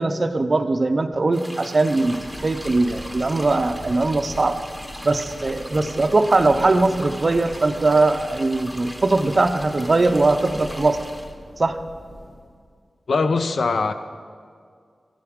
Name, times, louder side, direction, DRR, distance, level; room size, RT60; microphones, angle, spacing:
voice 1, 0.0-4.6 5.0-11.0 11.6-11.8, right 2 dB, 40° right, 8 dB, 0.5 m, -20 dB
sound 1, 1.3-11.3, equal, 10° left, 1.0 m, -39 dB
Thunder, 1.9-12.7, left 1 dB, 40° left, 1.6 m, -41 dB
voice 2, 13.1-13.9, left 4 dB, 70° left, 9 dB, 0.6 m, -21 dB
13.5 x 11.5 x 3.6 m, 2.1 s
wide cardioid pair, 130°, 0 cm